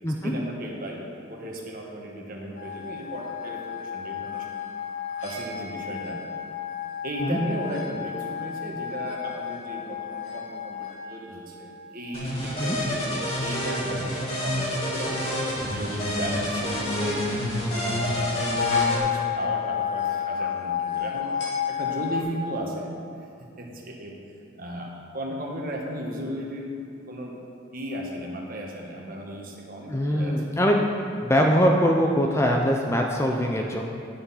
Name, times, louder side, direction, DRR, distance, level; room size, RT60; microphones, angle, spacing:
voice 1, 0.2-4.5 5.2-6.2 7.0-15.2 15.6-17.2 17.7-21.3 21.7-23.0 23.6-24.2 24.6-26.7 27.1-27.3 27.7-30.6, right 1 dB, 45° right, -1 dB, 1.3 m, -35 dB
sound 1, 2.6-12.4 17.8-22.2, left 8 dB, 70° left, 2.2 m, -31 dB
sound 2, 12.1-19.0, equal, 30° left, 2.1 m, -28 dB
voice 2, 29.9-30.9 31.2-33.8, equal, 15° left, 1 dB, 0.5 m, -22 dB
9.5 x 6.4 x 5.6 m, 2.6 s
head